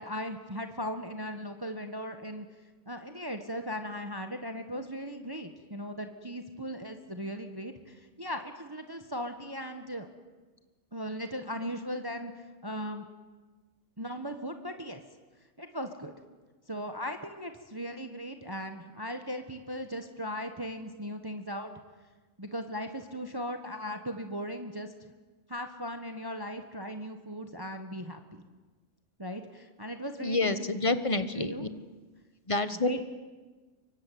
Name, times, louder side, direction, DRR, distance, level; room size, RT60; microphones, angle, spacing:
voice 1, 0.0-2.4 2.9-10.1 10.9-13.0 14.0-15.0 15.6-16.1 16.7-21.7 22.4-24.9 25.5-28.4 29.2-30.5 31.1-31.7 32.8-33.0, equal, 15° right, 6 dB, 1.4 m, -38 dB
voice 2, 30.2-31.7 32.5-33.0, left 2 dB, 25° left, 11 dB, 1.3 m, -28 dB
25.0 x 23.5 x 9.4 m, 1.3 s
omnidirectional pair, 1.5 m